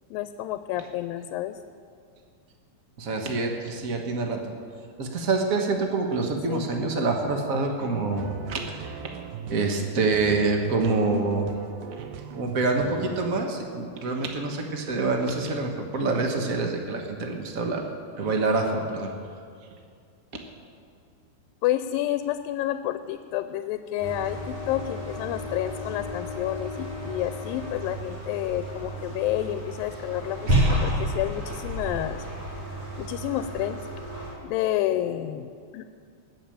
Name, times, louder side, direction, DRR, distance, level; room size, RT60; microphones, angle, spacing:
voice 1, 0.1-1.6 6.5-6.6 21.6-32.3 33.0-33.8 34.4-35.9, left 13 dB, 85° left, 10 dB, 2.3 m, -29 dB
voice 2, 3.0-4.4 5.0-9.1 9.5-11.5 12.0-12.1 12.3-17.8 18.2-19.1, right 3 dB, 60° right, 2 dB, 0.8 m, -26 dB
sound 1, 8.2-13.4, right 6 dB, 80° right, 2.4 m, -39 dB
sound 2, 24.0-34.3, equal, 45° right, 5.7 m, -31 dB
20.0 x 7.3 x 8.7 m, 2.3 s
omnidirectional pair, 3.9 m